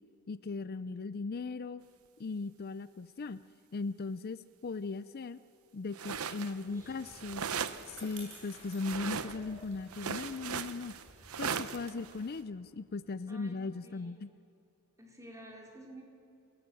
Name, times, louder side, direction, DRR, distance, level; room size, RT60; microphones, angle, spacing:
voice 1, 0.3-1.8 2.2-3.4 3.7-5.4 5.7-7.4 7.9-10.9 11.4-14.3, left 3 dB, 45° left, 14 dB, 0.5 m, -38 dB
sound 1, 5.9-6.6 6.9-8.1 8.7-9.6 9.9-12.3, right 6 dB, 90° right, 0.9 m, -38 dB
Bicycle, 6.5-13.1, right 2 dB, 65° right, 8.0 m, -55 dB
voice 2, 13.3-14.2 15.0-16.0, right 1 dB, 15° right, 0 dB, 4.2 m, -51 dB
27.0 x 18.0 x 7.7 m, 2.8 s
head